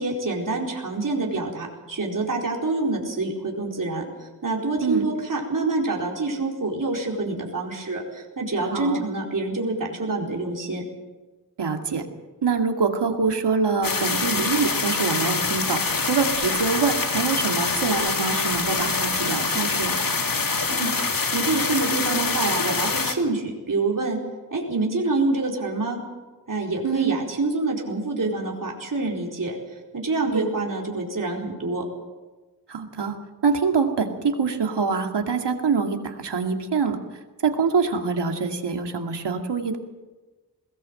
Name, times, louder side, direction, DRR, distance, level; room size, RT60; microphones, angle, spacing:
voice 1, 0.0-10.8 20.7-24.2 24.5-26.0 26.5-29.6 29.9-31.8, right 3 dB, 50° right, -1 dB, 4.5 m, -26 dB
voice 2, 8.7-9.0 11.6-12.0 12.4-20.0 26.8-27.2 30.3-30.5 32.7-33.2 33.4-37.0 37.4-39.8, right 5 dB, 80° right, 4 dB, 2.4 m, -25 dB
sound 1, 13.8-23.1, left 4 dB, 55° left, 2.3 m, -25 dB
21.0 x 18.0 x 7.8 m, 1.2 s
wide cardioid pair, 90°, 41 cm